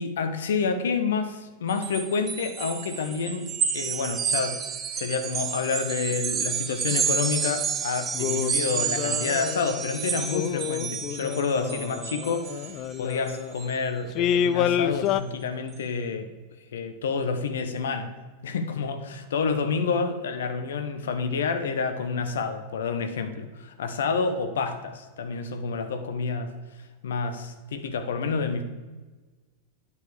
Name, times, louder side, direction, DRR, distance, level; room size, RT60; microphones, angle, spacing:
voice 1, 0.0-4.6 4.9-16.3 16.7-18.1 18.4-26.5 27.0-28.6, left 5 dB, 65° left, 8 dB, 1.0 m, -29 dB
sound 1, 1.7-13.8, right 7 dB, 25° right, 0.9 m, -30 dB
sound 2, 7.3-7.6 8.1-9.8 10.2-13.5 14.1-15.2, left 10 dB, 40° left, 0.4 m, -29 dB
9.5 x 6.9 x 4.8 m, 1.3 s
figure-of-eight pair, 90°, 0 cm